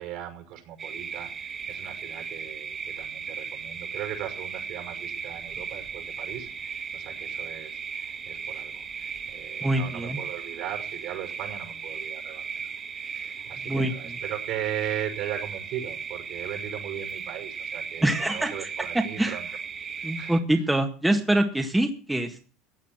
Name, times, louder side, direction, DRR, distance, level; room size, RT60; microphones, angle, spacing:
voice 1, 0.0-12.5 12.9-19.5 20.0-20.4, right 11 dB, 65° right, 6 dB, 5.8 m, -38 dB
sound 1, 0.8-20.4, right 6 dB, 30° right, 1.9 m, -36 dB
voice 2, 9.6-10.2 13.7-13.9 18.0-18.5 18.9-19.4 20.0-22.4, right 1 dB, 5° right, 5 dB, 1.8 m, -24 dB
15.5 x 9.0 x 6.0 m, 0.38 s
supercardioid pair, 100°, 0 cm